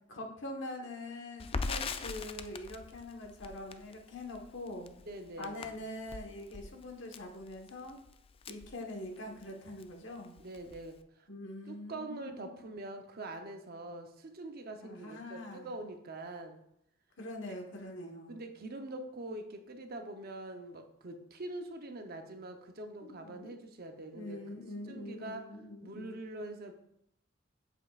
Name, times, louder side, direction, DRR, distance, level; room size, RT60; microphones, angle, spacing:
voice 1, 0.1-4.9 5.4-8.0 8.5-10.4 11.3-12.5 14.8-15.7 17.2-18.4 23.0-23.6 24.1-26.2, left 1 dB, 75° left, 2 dB, 1.3 m, -44 dB
Crackle, 1.4-9.5 9.8-9.9 10.2-11.0, left 4 dB, 30° left, 0.3 m, -42 dB
voice 2, 5.1-5.7 10.4-11.0 11.7-16.6 18.3-24.4 24.9-25.5 25.8-26.7, right 2 dB, 55° right, 5 dB, 0.8 m, -44 dB
8.2 x 7.2 x 2.4 m, 0.77 s
head